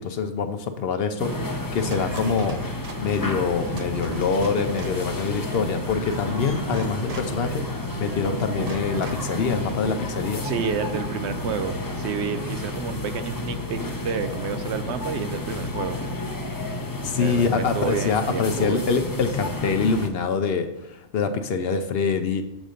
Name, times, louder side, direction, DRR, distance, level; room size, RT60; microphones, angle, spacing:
voice 1, 0.0-2.6 3.0-7.7 8.0-10.4 17.0-22.4, left 5 dB, 65° left, 8 dB, 0.8 m, -25 dB
sound 1, 1.2-20.1, left 2 dB, 25° left, 0.5 m, -31 dB
sound 2, 1.2-17.4, right 3 dB, 40° right, 0.6 m, -38 dB
voice 2, 10.4-16.0 17.2-18.8, right 6 dB, 70° right, 9 dB, 0.9 m, -30 dB
7.3 x 4.0 x 4.9 m, 1.0 s
omnidirectional pair, 1.2 m